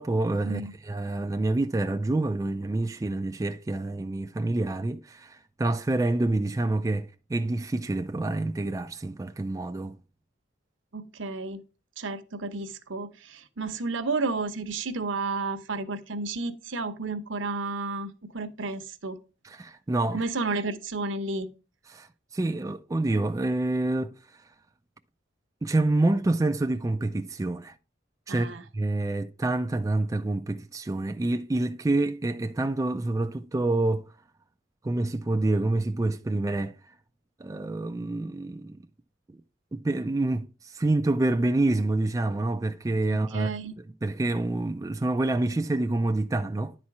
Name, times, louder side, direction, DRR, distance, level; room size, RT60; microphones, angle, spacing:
voice 1, 0.0-10.0 19.4-20.2 21.9-24.2 25.6-27.8 28.3-34.1 34.8-36.8 37.4-38.8 39.3-39.4 39.7-43.5 44.0-46.7, right 2 dB, 15° right, 0.3 m, -27 dB
voice 2, 10.9-11.6 12.0-19.2 20.1-21.5 28.3-28.6 43.1-43.8, right 3 dB, 75° right, 0.9 m, -32 dB
10.5 x 4.3 x 4.7 m
head